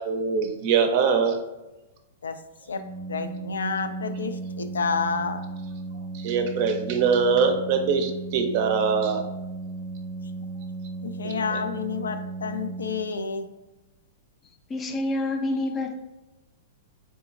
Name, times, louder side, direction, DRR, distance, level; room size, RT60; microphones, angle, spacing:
voice 1, 0.0-1.4 6.2-9.2 11.2-11.3, right 5 dB, 50° right, 6 dB, 0.5 m, -23 dB
voice 2, 2.7-5.4 10.4-10.5 11.0-13.5, left 5 dB, 90° left, 9 dB, 0.3 m, -30 dB
Organ, 2.7-13.5, right 3 dB, 15° right, 0.7 m, -35 dB
voice 3, 14.7-16.0, left 2 dB, 20° left, 5 dB, 0.4 m, -27 dB
3.7 x 3.0 x 2.5 m, 1.0 s
hypercardioid pair, 120°, 0 cm